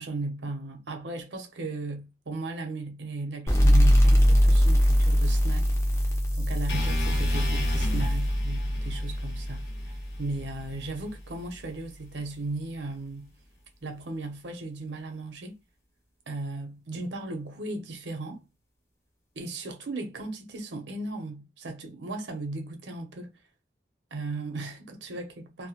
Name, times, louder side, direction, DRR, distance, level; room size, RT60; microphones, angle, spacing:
voice 1, 0.0-5.7 6.4-13.3 13.8-15.6 16.3-18.4 19.4-23.3 24.1-25.7, right 2 dB, 80° right, 0.6 m, -36 dB
sound 1, 3.5-10.7, equal, 15° left, 0.5 m, -22 dB
sound 2, 6.7-10.8, left 2 dB, 80° left, 0.8 m, -37 dB
2.2 x 2.0 x 2.8 m
head